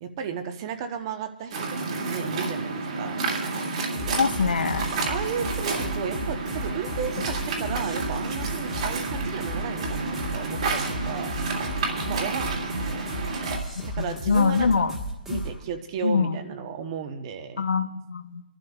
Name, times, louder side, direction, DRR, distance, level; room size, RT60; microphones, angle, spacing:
voice 1, 0.0-3.2 5.1-11.4 12.0-13.0 13.8-14.7 15.3-17.6, right 7 dB, 30° right, 8 dB, 0.9 m, -34 dB
Waves surf, 1.5-13.6, right 3 dB, 45° right, 2.1 m, -30 dB
sound 1, 3.9-15.6, equal, 5° right, 1.4 m, -35 dB
voice 2, 4.2-4.9 13.7-13.8 14.3-15.0 15.3-15.4 16.0-16.4 17.6-18.4, left 5 dB, 85° left, 10 dB, 0.8 m, -24 dB
27.0 x 11.5 x 2.4 m, 1.0 s
hypercardioid pair, 160°, 5 cm